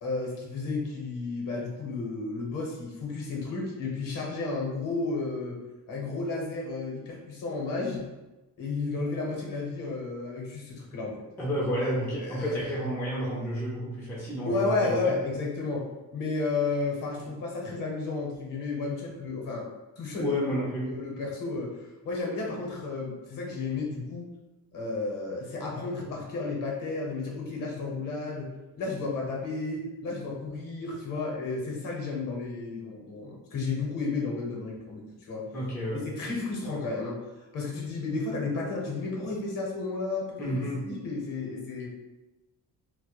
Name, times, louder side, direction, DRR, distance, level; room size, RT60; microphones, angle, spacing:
voice 1, 0.0-5.6 5.9-8.1 8.6-11.1 12.2-12.6 14.5-15.9 16.1-19.7 20.0-20.4 20.8-21.7 22.0-24.3 24.7-35.5 35.9-37.2 37.5-41.9, left 3 dB, 60° left, -1 dB, 0.7 m, -32 dB
voice 2, 11.4-15.2 20.2-21.0 35.5-36.0 40.4-40.9, equal, 5° left, -6 dB, 0.3 m, -30 dB
2.1 x 2.1 x 2.8 m, 1.1 s
cardioid pair, 165°, 37 cm